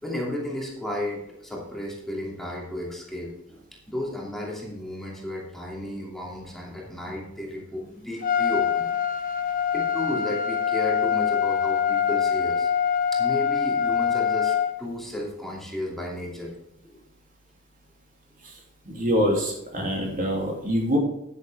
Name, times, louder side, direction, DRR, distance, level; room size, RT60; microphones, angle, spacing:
voice 1, 0.0-9.0 9.7-12.7 13.1-16.5 16.9-17.0 19.0-19.1, left 1 dB, ahead, -3 dB, 2.7 m, -33 dB
Trumpet, 8.2-14.7, left 7 dB, 45° left, 1.2 m, -24 dB
voice 2, 18.8-21.0, equal, 40° right, 0 dB, 2.9 m, -25 dB
10.0 x 10.0 x 3.5 m, 0.86 s
head